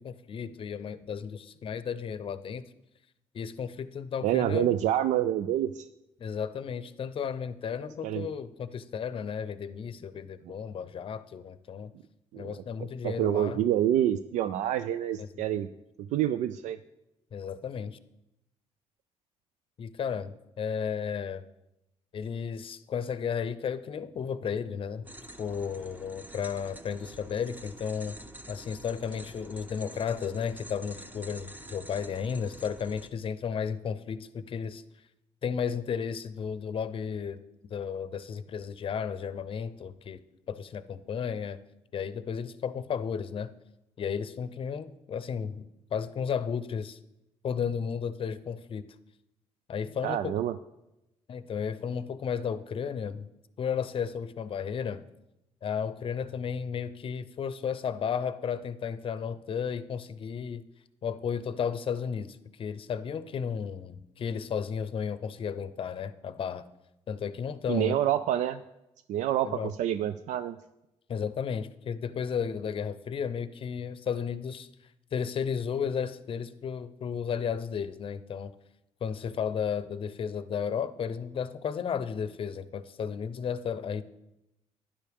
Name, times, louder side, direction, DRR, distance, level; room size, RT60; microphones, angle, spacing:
voice 1, 0.0-2.6 3.3-4.8 6.2-11.9 12.4-13.6 15.2-15.4 17.3-18.0 19.8-21.4 22.1-25.1 25.4-28.2 28.5-34.8 35.4-37.4 37.7-40.2 40.5-41.6 41.9-43.5 44.0-47.0 47.4-48.8 49.7-50.4 51.3-53.3 53.6-55.0 55.6-60.6 61.0-66.6 67.1-68.0 69.4-69.7 71.1-74.7 75.1-78.5 79.0-84.0, left 7 dB, 50° left, 14 dB, 0.6 m, -33 dB
voice 2, 4.2-5.9 8.0-8.3 12.3-15.7 16.0-16.8 50.0-50.6 67.7-68.6 69.1-70.6, right 11 dB, 85° right, 12 dB, 0.4 m, -27 dB
sound 1, 25.0-33.1, right 1 dB, 15° right, 1.0 m, -47 dB
12.0 x 10.0 x 3.5 m, 0.90 s
cardioid pair, 100°, 12 cm